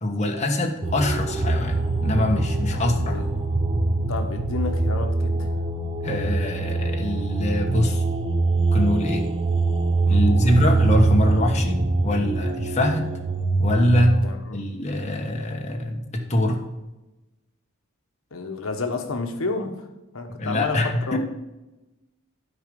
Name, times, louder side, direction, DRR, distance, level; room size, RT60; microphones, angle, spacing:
voice 1, 0.0-3.2 6.0-8.0 8.7-9.3 10.1-13.1 13.6-14.2 14.5-16.6 20.4-21.2, left 1 dB, 30° left, 1 dB, 1.2 m, -24 dB
sound 1, 0.8-14.2, right 3 dB, 25° right, 0.6 m, -23 dB
voice 2, 2.7-3.3 4.1-5.5 10.1-10.5 14.2-14.6 18.3-19.9 20.1-20.8 21.1-21.2, left 3 dB, 75° left, 5 dB, 1.1 m, -31 dB
11.5 x 4.9 x 5.2 m, 1.0 s
head